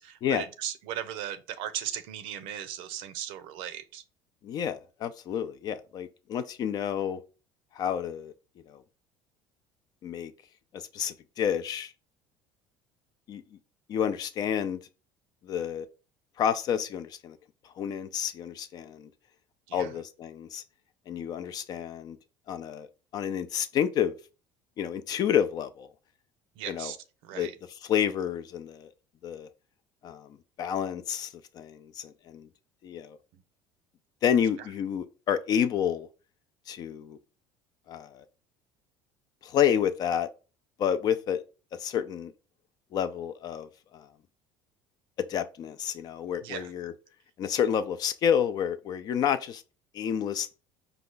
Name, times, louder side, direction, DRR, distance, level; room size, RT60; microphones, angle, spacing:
voice 1, 0.0-4.0 19.7-19.9 26.6-27.0 27.2-27.5 33.3-33.4 34.6-34.7 46.4-46.7, right 10 dB, 75° right, 0.6 m, -37 dB
voice 2, 4.4-7.2 7.7-8.3 8.7-8.8 10.0-10.3 10.7-11.9 13.3-13.4 13.9-14.8 15.4-15.9 16.4-17.4 17.8-19.1 19.7-20.6 21.1-22.2 22.5-22.9 23.1-24.1 24.8-25.9 26.7-26.9 27.4-27.5 27.9-28.9 29.2-29.5 30.0-32.5 32.8-33.2 34.2-36.1 36.7-37.2 37.9-38.3 39.4-40.3 40.8-41.4 41.8-42.3 42.9-44.1 45.3-46.9 47.4-49.6 49.9-50.5, left 9 dB, 45° left, 0.5 m, -29 dB
4.8 x 2.3 x 3.8 m
cardioid pair, 115°, 9 cm